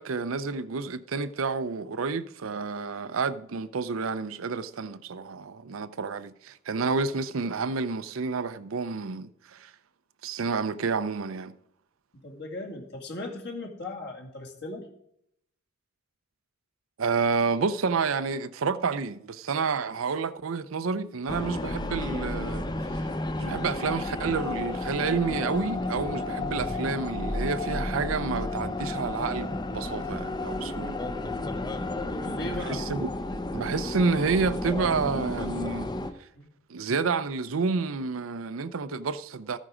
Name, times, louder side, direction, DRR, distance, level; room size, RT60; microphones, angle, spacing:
voice 1, 0.0-9.7 10.2-11.5 17.0-22.7 23.4-31.0 32.4-33.1 33.5-35.9 36.7-39.6, right 4 dB, 85° right, 0.6 m, -29 dB
voice 2, 12.2-14.9 32.0-32.8 36.3-36.5, left 2 dB, 55° left, 2.2 m, -37 dB
sound 1, 21.3-36.1, left 2 dB, 20° left, 0.6 m, -32 dB
14.0 x 9.1 x 5.0 m
head